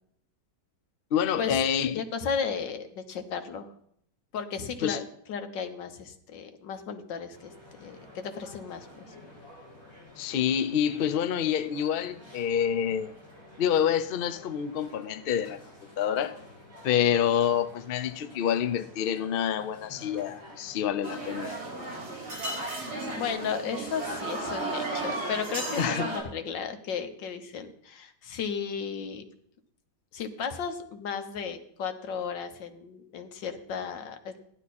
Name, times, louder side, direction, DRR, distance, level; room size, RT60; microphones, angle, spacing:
voice 1, 1.1-2.0 4.8-5.0 10.2-13.1 13.6-15.6 16.0-16.4 16.8-21.6 25.8-26.1, left 9 dB, 70° left, 0.5 m, -27 dB
voice 2, 1.9-3.7 4.3-7.5 7.8-8.9 23.1-29.2 30.1-34.4, left 6 dB, 90° left, 1.8 m, -34 dB
sound 1, 7.3-23.3, left 1 dB, 15° right, 5.1 m, -50 dB
sound 2, 21.0-26.2, right 2 dB, 60° right, 4.1 m, -34 dB
15.5 x 11.5 x 4.2 m
omnidirectional pair, 1.9 m